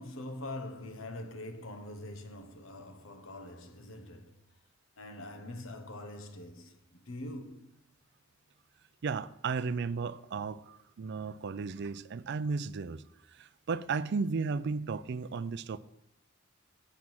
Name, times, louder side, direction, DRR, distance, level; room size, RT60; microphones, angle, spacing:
voice 1, 0.0-4.4 5.0-7.7, left 1 dB, 75° left, 1.2 m, -44 dB
voice 2, 9.0-13.0 13.4-15.8, right 4 dB, 55° right, 0.4 m, -34 dB
7.5 x 7.1 x 6.1 m
head